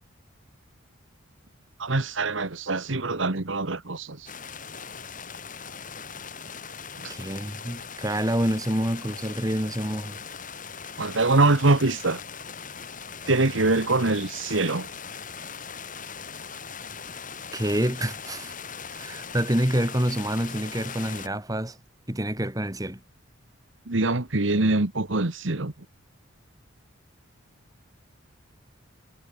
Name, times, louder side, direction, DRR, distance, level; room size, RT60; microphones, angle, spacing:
voice 1, 1.8-4.2 11.0-12.2 13.3-14.9 23.9-25.7, right 2 dB, 70° right, 1.6 m, -23 dB
sound 1, 4.3-21.3, left 6 dB, 40° left, 7.9 m, -40 dB
voice 2, 7.1-10.2 17.5-18.5 18.9-21.8 22.1-23.0, right 1 dB, 20° right, 2.5 m, -27 dB
head